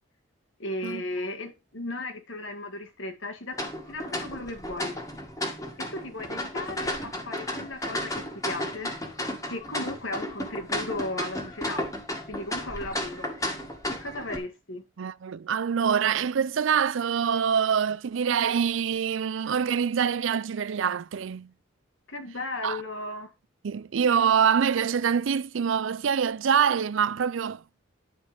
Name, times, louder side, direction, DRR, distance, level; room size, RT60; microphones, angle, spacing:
voice 1, 0.6-3.6 3.9-4.9 5.8-8.9 9.5-11.8 12.3-13.3 13.9-14.9 22.1-23.3, left 2 dB, 75° left, 2.0 m, -36 dB
sound 1, 3.5-14.4, left 1 dB, 15° left, 1.9 m, -33 dB
voice 2, 15.0-21.5 22.6-22.8 23.6-27.6, right 7 dB, 75° right, 0.4 m, -25 dB
9.7 x 5.1 x 5.1 m
head